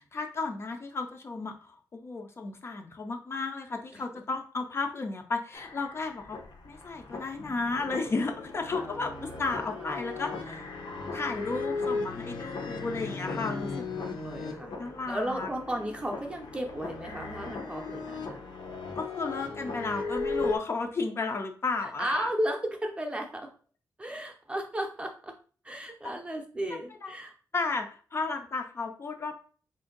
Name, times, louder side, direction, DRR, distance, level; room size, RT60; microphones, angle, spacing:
voice 1, 0.0-6.4 6.6-10.7 11.1-14.0 14.8-15.5 19.0-22.3 27.0-27.1 27.5-29.3, left 3 dB, 35° left, 4 dB, 0.4 m, -33 dB
sound 1, 5.5-20.6, left 4 dB, 85° left, 0.8 m, -37 dB
voice 2, 8.8-10.6 13.2-14.7 15.1-18.4 21.8-23.5 24.0-25.3 25.6-27.3, right 1 dB, 15° right, 3 dB, 0.6 m, -35 dB
4.3 x 2.6 x 3.8 m, 0.41 s
wide cardioid pair, 180°, 7 cm